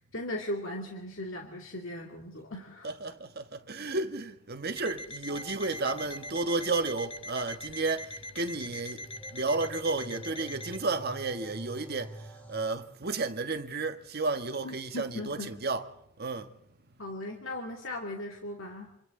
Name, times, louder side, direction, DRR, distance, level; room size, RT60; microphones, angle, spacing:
voice 1, 0.0-3.1 14.6-15.5 17.0-18.9, left 1 dB, 65° left, 2.4 m, -38 dB
voice 2, 2.8-9.0 9.3-16.5, right 3 dB, 50° right, 1.4 m, -32 dB
Alarm, 4.8-10.8, left 1 dB, 25° left, 1.0 m, -43 dB
sound 1, 5.3-12.7, right 1 dB, 10° left, 2.9 m, -48 dB
27.5 x 26.0 x 3.8 m
head